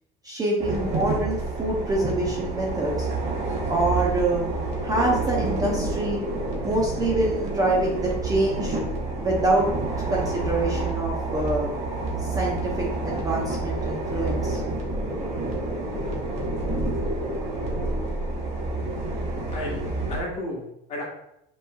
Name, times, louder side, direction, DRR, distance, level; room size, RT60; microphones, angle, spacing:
voice 1, 0.2-3.1 3.7-4.4 4.8-6.2 6.6-8.8 9.2-11.7 12.2-14.6, right 2 dB, 20° right, -2 dB, 0.6 m, -26 dB
sound 1, 0.6-20.2, right 2 dB, 35° right, 1.0 m, -28 dB
voice 2, 19.5-21.0, left 1 dB, 35° left, -3 dB, 1.4 m, -33 dB
5.7 x 3.1 x 2.3 m, 0.80 s
cardioid pair, 140°, 19 cm